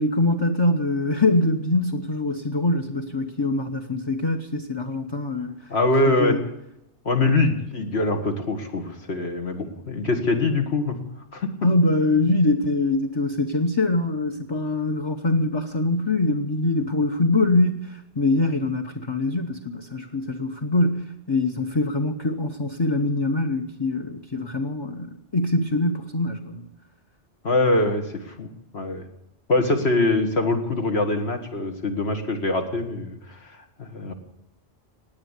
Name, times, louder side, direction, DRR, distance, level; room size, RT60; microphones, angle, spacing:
voice 1, 0.0-5.5 6.0-6.4 11.6-26.6, left 2 dB, 25° left, 3 dB, 0.9 m, -23 dB
voice 2, 5.7-6.4 7.1-11.0 11.3-11.5 27.4-28.5 28.7-29.0 29.5-33.5 33.8-34.1, left 2 dB, 65° left, 5 dB, 2.0 m, -23 dB
17.5 x 9.5 x 8.1 m, 0.84 s
omnidirectional pair, 1.2 m